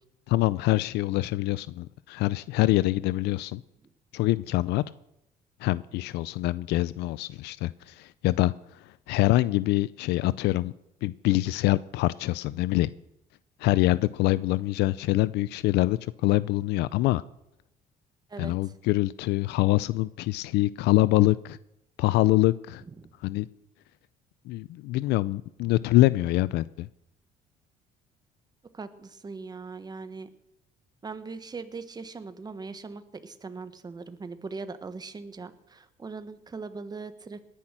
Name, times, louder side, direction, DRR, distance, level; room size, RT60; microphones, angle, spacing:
voice 1, 0.3-3.6 4.1-4.8 5.6-8.5 9.1-10.7 11.0-12.9 13.6-17.2 18.4-21.6 22.0-22.8 23.2-23.5 24.5-26.9, left 17 dB, 85° left, 18 dB, 0.5 m, -25 dB
voice 2, 18.3-18.7 23.0-23.1 28.7-30.3 31.0-37.5, right 4 dB, 25° right, 11 dB, 1.4 m, -40 dB
19.0 x 10.0 x 6.1 m, 0.83 s
cardioid pair, 110°, 17 cm